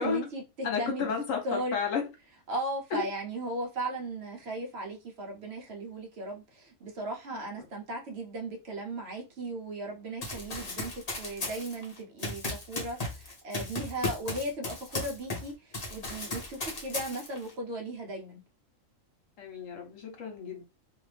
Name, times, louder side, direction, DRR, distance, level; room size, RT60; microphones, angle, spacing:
voice 1, 0.0-1.1 1.4-1.7 2.5-10.9 11.2-18.4, right 1 dB, 60° right, 0.9 m, -37 dB
voice 2, 0.6-2.0 2.9-3.1 19.4-20.6, left 6 dB, 75° left, 1.2 m, -32 dB
Run, 10.2-15.5 15.7-17.5, left 2 dB, 35° left, 0.9 m, -36 dB
2.6 x 2.5 x 3.2 m
omnidirectional pair, 1.4 m